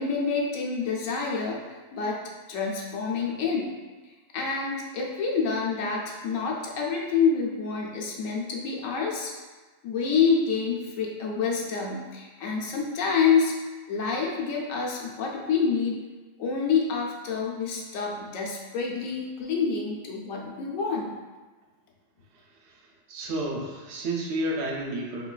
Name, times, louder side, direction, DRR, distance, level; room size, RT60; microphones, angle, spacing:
voice 1, 0.0-2.2 2.5-3.7 4.3-9.3 9.8-13.6 13.9-16.0 16.4-21.1, left 5 dB, 85° left, -2 dB, 1.0 m, -27 dB
voice 2, 23.1-25.3, right 1 dB, 70° right, -1 dB, 0.9 m, -31 dB
3.9 x 2.2 x 2.3 m, 1.3 s
omnidirectional pair, 1.3 m